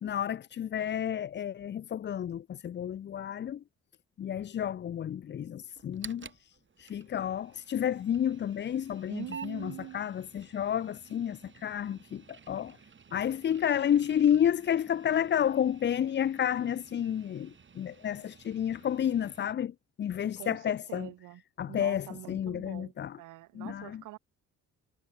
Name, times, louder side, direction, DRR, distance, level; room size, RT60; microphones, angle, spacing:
voice 1, 0.0-3.6 4.2-12.8 13.1-21.1 21.6-23.2 23.5-24.0, left 9 dB, 40° left, 0.5 m, -31 dB
sound 1, 5.7-19.5, right 6 dB, 40° right, 5.5 m, -52 dB
voice 2, 9.1-10.0 20.4-24.2, right 17 dB, 90° right, 1.4 m, -45 dB
cardioid pair, 90°, 30 cm